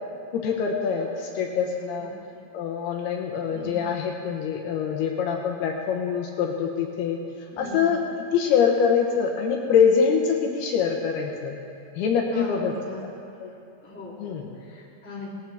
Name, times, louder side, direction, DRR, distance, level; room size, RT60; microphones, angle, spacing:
voice 1, 0.3-2.1 2.5-7.2 7.6-8.0 8.3-11.6 12.0-12.7 13.4-13.5 14.2-14.5, left 6 dB, 75° left, 1 dB, 2.8 m, -24 dB
voice 2, 2.0-2.4 3.5-3.8 7.5-7.9 12.3-13.0 13.8-15.3, left 2 dB, 5° left, -7 dB, 2.1 m, -40 dB
19.5 x 15.5 x 3.5 m, 2.6 s
omnidirectional pair, 4.9 m